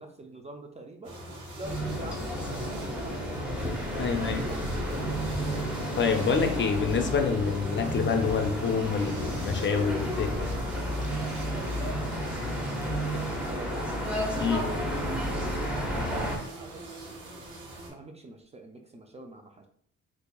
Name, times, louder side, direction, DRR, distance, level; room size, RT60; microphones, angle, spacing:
voice 1, 0.0-4.6 13.0-13.9 15.9-16.8 17.9-19.7, right 2 dB, 20° right, 4 dB, 0.4 m, -45 dB
sound 1, 1.0-17.9, right 1 dB, 90° right, 1.2 m, -44 dB
sound 2, 1.6-16.4, equal, 5° right, 0.9 m, -31 dB
voice 2, 4.0-4.4 6.0-10.5 14.4-14.7, left 5 dB, 40° left, 5 dB, 0.5 m, -27 dB
4.3 x 2.6 x 2.3 m, 0.62 s
cardioid pair, 90°, 30 cm